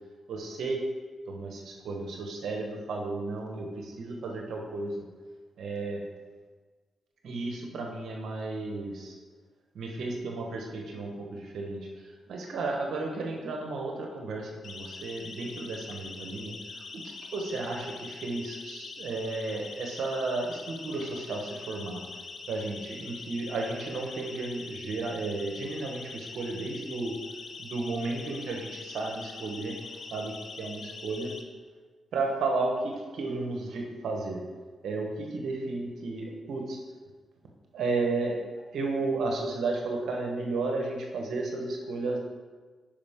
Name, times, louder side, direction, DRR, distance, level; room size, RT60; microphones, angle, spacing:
voice 1, 0.3-0.8 1.3-4.9 5.6-6.0 7.2-9.2 9.7-22.0 22.5-27.2 27.6-29.8 30.1-31.3 32.1-34.4 34.8-36.8 37.7-38.4 38.7-42.2, right 3 dB, 75° right, 1 dB, 1.3 m, -33 dB
Siren, 14.6-31.4, left 4 dB, 55° left, 0.8 m, -43 dB
10.5 x 5.2 x 3.7 m, 1.4 s
supercardioid pair, 50°, 0 cm